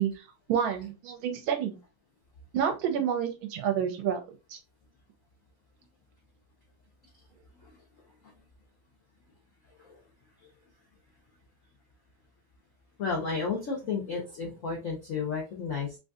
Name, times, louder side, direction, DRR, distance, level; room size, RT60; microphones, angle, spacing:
voice 1, 0.0-1.8 2.5-4.2 4.5-4.6, right 8 dB, 80° right, 5 dB, 1.4 m, -29 dB
voice 2, 13.0-16.0, left 5 dB, 70° left, -1 dB, 0.7 m, -33 dB
3.6 x 2.6 x 2.4 m, 0.29 s
omnidirectional pair, 2.3 m